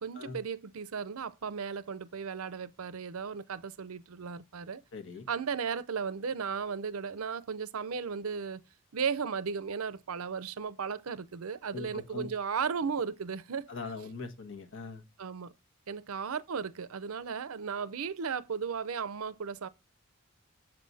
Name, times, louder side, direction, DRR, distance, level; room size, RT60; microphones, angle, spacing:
voice 1, 0.0-4.8 5.3-8.6 8.9-13.7 15.2-15.5 15.9-19.7, right 6 dB, 70° right, 0.6 m, -35 dB
voice 2, 4.9-5.3 11.7-12.3 13.7-15.0, left 3 dB, 65° left, 1.3 m, -41 dB
7.7 x 7.6 x 4.1 m
head